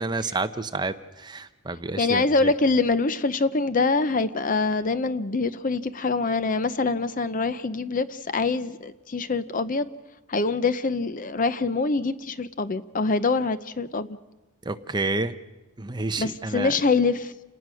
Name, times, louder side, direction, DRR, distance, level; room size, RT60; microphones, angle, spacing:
voice 1, 0.0-2.5 14.6-15.3 15.8-16.7, right 3 dB, 20° right, 10 dB, 0.7 m, -29 dB
voice 2, 2.0-9.9 10.3-14.2 16.2-17.3, left 3 dB, 35° left, 13 dB, 0.6 m, -24 dB
28.5 x 19.0 x 6.3 m, 1.1 s
head